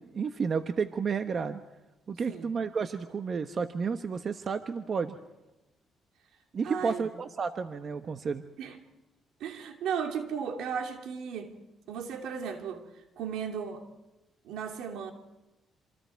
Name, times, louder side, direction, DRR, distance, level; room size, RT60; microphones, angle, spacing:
voice 1, 0.0-1.6 2.1-5.2 6.5-8.4, right 5 dB, 45° right, 8 dB, 1.2 m, -31 dB
voice 2, 6.6-7.1 8.6-8.8 9.4-11.5 11.9-12.8 13.2-13.8 14.4-15.1, right 7 dB, 85° right, 4 dB, 3.0 m, -35 dB
27.0 x 27.0 x 4.7 m, 1.0 s
cardioid pair, 90°, 0 cm